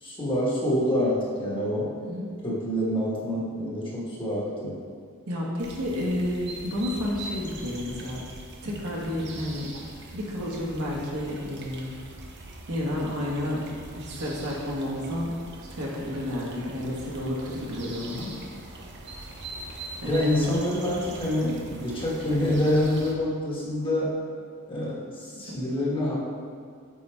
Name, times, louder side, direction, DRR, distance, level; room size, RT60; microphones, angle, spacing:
voice 1, 0.0-1.9 2.4-4.7 20.0-24.2 24.7-26.2, left 1 dB, 25° left, -6 dB, 1.4 m, -26 dB
voice 2, 2.0-2.3 5.3-8.2 8.6-9.7 10.1-12.0 12.7-13.6 13.9-15.3 15.6-18.3 20.0-20.6 25.5-25.6, left 1 dB, 70° right, -4 dB, 1.4 m, -31 dB
sound 1, 5.6-23.1, right 2 dB, 50° right, 0.8 m, -42 dB
8.8 x 4.2 x 3.4 m, 2.1 s
head